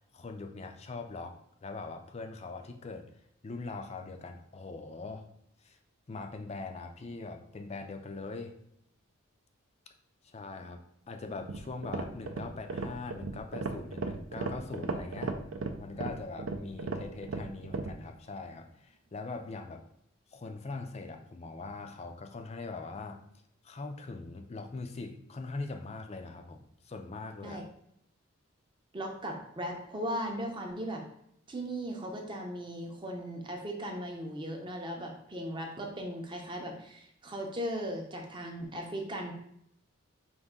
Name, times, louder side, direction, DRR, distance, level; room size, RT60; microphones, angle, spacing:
voice 1, 0.1-3.1 3.4-5.3 5.6-5.8 6.1-8.5 10.3-10.8 11.1-15.4 15.8-19.8 20.3-23.2 23.6-27.6, left 3 dB, 30° left, 5 dB, 0.4 m, -41 dB
sound 1, 11.3-18.0, right 3 dB, 70° right, 0.4 m, -36 dB
voice 2, 28.9-31.0 31.5-39.3, equal, 20° right, 1 dB, 0.6 m, -37 dB
5.2 x 2.6 x 3.7 m, 0.74 s
head